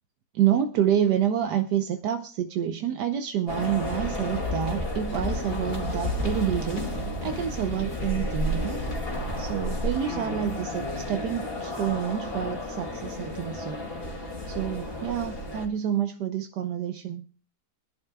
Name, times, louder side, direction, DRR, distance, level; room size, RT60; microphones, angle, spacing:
voice 1, 0.3-6.9 7.2-8.8 9.4-13.8 14.5-17.3, right 10 dB, 80° right, 6 dB, 1.4 m, -28 dB
sound 1, 3.5-15.7, left 1 dB, 35° left, 2.6 m, -31 dB
23.5 x 11.0 x 2.2 m, 0.40 s
omnidirectional pair, 1.8 m